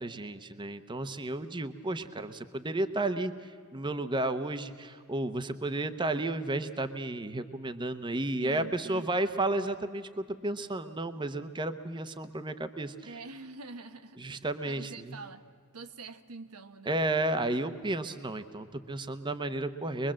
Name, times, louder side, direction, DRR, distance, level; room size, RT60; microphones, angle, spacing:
voice 1, 0.0-12.9 14.2-15.1 16.9-20.1, right 2 dB, 20° right, 10 dB, 0.8 m, -32 dB
voice 2, 8.4-9.1 13.1-15.4 15.7-17.0, right 3 dB, 80° right, 8 dB, 1.1 m, -45 dB
23.0 x 23.0 x 7.5 m, 2.2 s
head